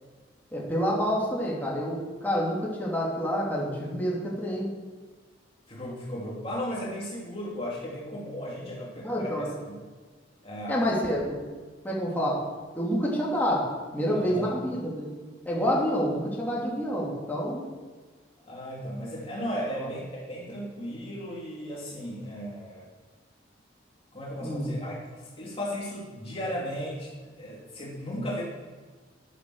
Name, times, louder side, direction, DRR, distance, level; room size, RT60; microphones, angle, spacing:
voice 1, 0.5-4.7 9.0-9.5 10.7-11.4 11.8-12.4 12.7-15.1 15.4-17.6 19.8-19.9 24.4-24.7, equal, 10° left, -5 dB, 3.0 m, -28 dB
voice 2, 5.7-9.7 10.4-10.8 14.1-14.5 18.4-22.9 24.1-27.1 27.4-28.4, equal, 30° left, -4 dB, 2.7 m, -35 dB
11.0 x 10.5 x 6.3 m, 1.4 s
head